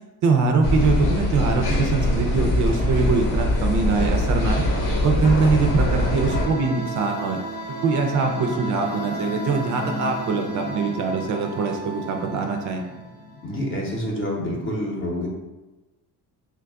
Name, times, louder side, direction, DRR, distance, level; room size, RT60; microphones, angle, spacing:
voice 1, 0.2-4.6 5.0-7.4 7.7-12.8, right 4 dB, 50° right, 3 dB, 0.5 m, -23 dB
sound 1, 0.6-6.4, left 1 dB, 60° left, 0.9 m, -22 dB
sound 2, 5.1-13.7, right 2 dB, 80° left, 1.0 m, -35 dB
sound 3, 8.1-13.9, left 3 dB, 15° left, 0.4 m, -38 dB
voice 2, 13.4-15.3, left 1 dB, 30° left, -1 dB, 0.8 m, -27 dB
3.2 x 2.3 x 3.5 m, 1.1 s
cardioid pair, 130°, 38 cm